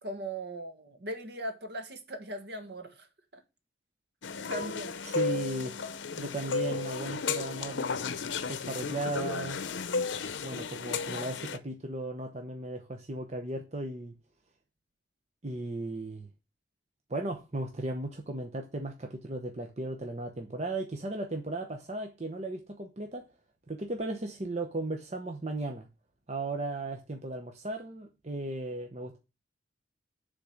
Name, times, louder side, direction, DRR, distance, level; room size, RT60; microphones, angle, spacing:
voice 1, 0.0-3.4 4.5-5.0, right 1 dB, 60° right, 1.3 m, -39 dB
sound 1, 4.2-11.6, left 4 dB, 90° left, 0.7 m, -34 dB
voice 2, 5.0-5.8 6.2-7.9 8.5-9.6 10.4-14.1 15.4-16.3 17.1-23.2 23.7-25.9 26.3-29.2, right 2 dB, 35° right, 0.8 m, -36 dB
6.7 x 3.8 x 6.3 m
head